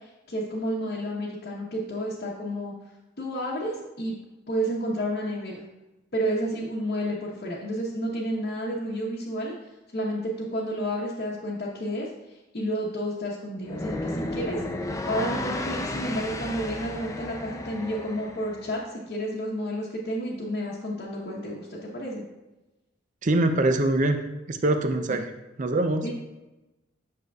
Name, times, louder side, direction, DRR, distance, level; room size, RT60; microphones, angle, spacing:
voice 1, 0.0-2.7 3.2-4.1 4.5-5.6 6.1-9.5 9.9-12.1 12.5-14.6 15.0-22.2 25.1-25.2 26.0-26.1, equal, 55° left, -5 dB, 1.0 m, -31 dB
sound 1, 13.6-18.7, left 2 dB, 15° left, 0.4 m, -33 dB
voice 2, 23.2-24.2 24.5-25.3 25.6-26.1, right 2 dB, 40° right, 7 dB, 0.5 m, -23 dB
8.6 x 6.4 x 2.3 m, 1.0 s
head